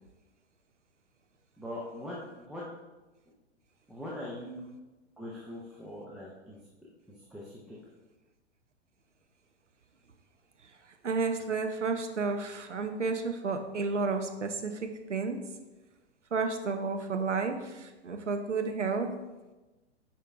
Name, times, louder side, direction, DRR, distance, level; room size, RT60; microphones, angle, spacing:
voice 1, 1.6-2.6 3.9-4.7 5.2-6.6 7.3-7.8, left 1 dB, ahead, -7 dB, 0.4 m, -41 dB
voice 2, 11.0-15.4 16.3-19.1, right 4 dB, 85° right, 6 dB, 0.8 m, -31 dB
9.8 x 4.5 x 2.4 m, 1.1 s
figure-of-eight pair, 110°, 35 cm